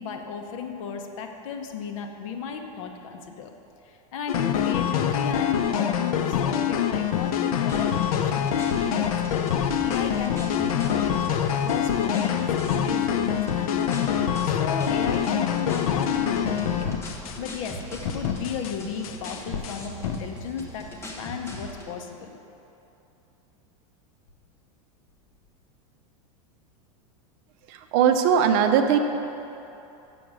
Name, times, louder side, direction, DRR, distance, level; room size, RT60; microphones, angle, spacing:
voice 1, 0.0-3.5 3.9-9.5 9.8-11.3 11.6-17.0 17.4-20.9 21.2-22.3, left 6 dB, 65° left, 4 dB, 0.9 m, -34 dB
sound 1, 4.3-17.8 18.0-18.8 19.0-20.2, left 9 dB, 85° left, 0.6 m, -25 dB
sound 2, 7.7-21.9, equal, 15° left, 1.0 m, -39 dB
voice 2, 27.7-29.0, right 8 dB, 50° right, 6 dB, 0.7 m, -20 dB
7.0 x 6.0 x 7.6 m, 2.9 s
supercardioid pair, 150°, 18 cm